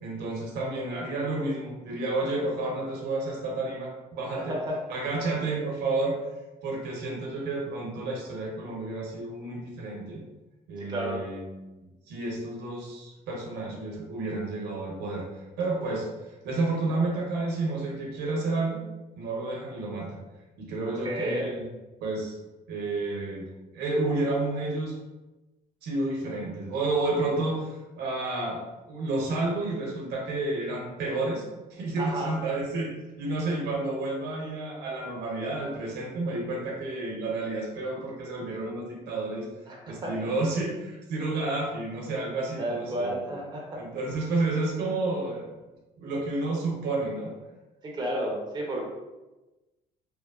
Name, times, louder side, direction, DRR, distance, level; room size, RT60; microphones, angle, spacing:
voice 1, 0.0-4.5 4.9-6.2 6.6-10.2 10.7-11.5 11.8-15.2 15.6-16.1 16.4-18.8 19.2-20.2 20.6-21.7 22.0-22.4 22.7-23.5 23.7-25.0 25.8-31.4 31.7-39.5 39.9-43.2 43.7-45.5 46.0-47.3, right 2 dB, 80° right, -2 dB, 0.8 m, -30 dB
voice 2, 4.3-4.8 10.8-11.2 21.0-21.5 32.0-32.4 39.7-40.1 42.6-43.8 47.8-48.8, right 1 dB, 25° right, -2 dB, 0.5 m, -32 dB
3.0 x 2.0 x 2.3 m, 1.1 s
cardioid pair, 110°, 17 cm